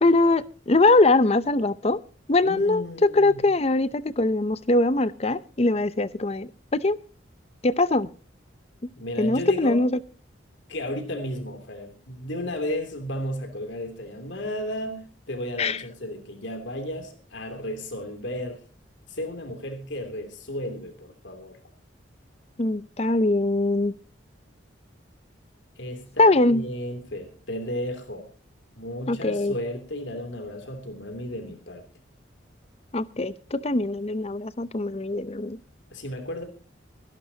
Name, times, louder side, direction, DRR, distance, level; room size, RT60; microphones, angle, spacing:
voice 1, 0.0-2.0 2.3-7.0 7.6-8.1 9.2-9.9 15.6-15.8 22.6-23.9 26.2-26.6 29.1-29.6 32.9-35.6, left 2 dB, 30° left, 0.6 m, -22 dB
voice 2, 2.4-3.4 9.0-9.8 10.7-18.6 19.1-21.6 25.8-28.3 28.8-31.8 35.9-36.4, left 1 dB, 70° left, 2.9 m, -34 dB
24.5 x 11.5 x 2.8 m
head